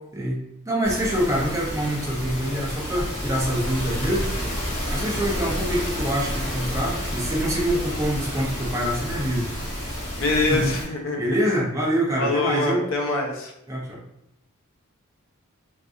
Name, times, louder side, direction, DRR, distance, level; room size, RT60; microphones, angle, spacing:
voice 1, 0.1-4.3 4.9-9.5 10.5-10.7 11.2-12.8 13.7-14.0, equal, 15° right, -4 dB, 0.6 m, -25 dB
sound 1, 0.8-10.8, equal, 30° left, 0.9 m, -30 dB
voice 2, 10.2-11.4 12.2-13.5, left 2 dB, 60° left, 1 dB, 0.4 m, -24 dB
2.6 x 2.4 x 2.4 m, 0.82 s
head